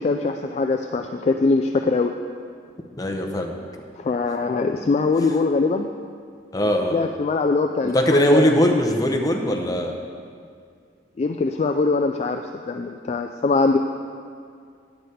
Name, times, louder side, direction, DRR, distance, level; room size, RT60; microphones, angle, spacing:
voice 1, 0.0-2.1 4.0-5.9 6.9-8.6 11.2-13.8, left 3 dB, 35° left, 5 dB, 0.3 m, -22 dB
voice 2, 3.0-3.6 6.5-7.1 7.8-10.0, equal, 20° left, 3 dB, 0.7 m, -20 dB
9.5 x 7.9 x 4.2 m, 2.2 s
head